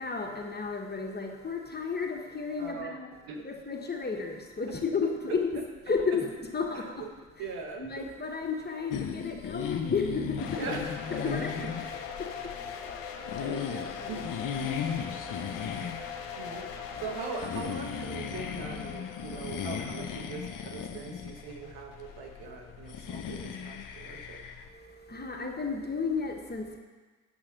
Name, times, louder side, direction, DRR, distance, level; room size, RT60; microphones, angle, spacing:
voice 1, 0.0-3.1 3.4-7.1 7.8-10.7 11.1-13.4 14.0-14.2 14.5-14.7 15.1-15.4 16.9-17.1 24.0-24.1 24.6-26.8, left 5 dB, 25° left, 2 dB, 1.3 m, -33 dB
voice 2, 2.6-3.0 3.3-3.5 6.1-6.2 6.7-6.9 7.4-8.1 10.6-10.9 11.2-11.7 12.7-12.8 13.4-14.3 16.4-16.7 17.0-24.4, right 4 dB, 70° right, 2 dB, 1.2 m, -41 dB
sound 1, 8.9-24.7, left 7 dB, 55° left, 0.9 m, -37 dB
sound 2, 10.4-23.2, left 7 dB, 80° left, 0.8 m, -41 dB
8.7 x 6.8 x 3.9 m, 1.3 s
hypercardioid pair, 45°, 38 cm